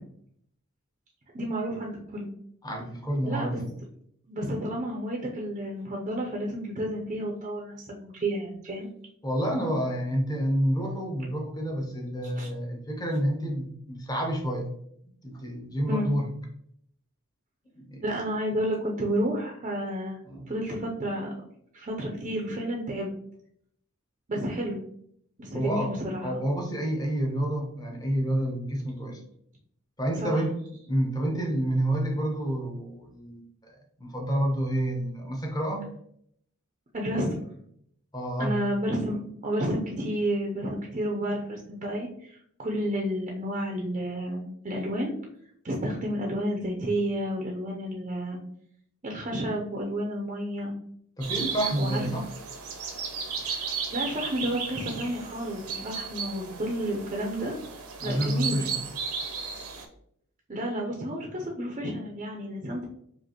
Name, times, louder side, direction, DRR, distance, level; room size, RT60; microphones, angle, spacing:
voice 1, 1.3-2.3 3.2-3.6 4.3-8.9 12.4-12.5 15.9-16.1 18.0-20.2 20.5-21.3 21.7-23.1 24.3-24.8 25.4-26.4 30.1-30.4 36.9-37.4 38.4-45.1 45.6-48.4 49.0-50.7 51.8-52.2 53.4-57.6 58.0-58.6 60.5-62.9, equal, 35° right, -1 dB, 0.5 m, -31 dB
voice 2, 2.6-3.6 9.2-14.7 15.2-16.3 17.7-18.0 20.3-20.5 25.5-26.0 26.2-29.2 30.0-30.6 30.9-33.7 34.0-35.9 38.1-38.5 51.2-52.3 58.0-58.8, right 1 dB, 20° left, 1 dB, 0.8 m, -29 dB
sound 1, 51.2-59.8, right 5 dB, 85° right, 0.8 m, -35 dB
5.0 x 2.5 x 2.9 m, 0.69 s
head